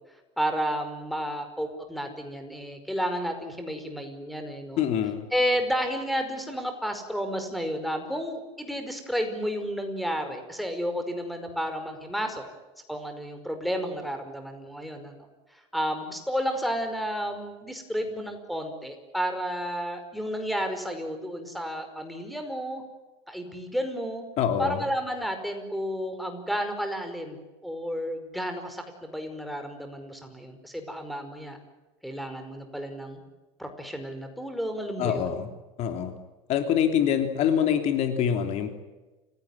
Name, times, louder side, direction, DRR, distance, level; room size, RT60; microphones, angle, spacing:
voice 1, 0.4-4.8 5.3-12.4 12.9-15.1 15.5-22.8 23.3-24.3 24.6-31.6 32.0-33.2 33.6-35.4, equal, ahead, 6 dB, 5.1 m, -31 dB
voice 2, 4.8-5.3 24.4-24.8 35.0-35.5 35.8-36.1 36.5-38.7, left 9 dB, 50° left, 7 dB, 3.1 m, -25 dB
29.5 x 17.0 x 10.0 m, 1.2 s
supercardioid pair, 125°, 14 cm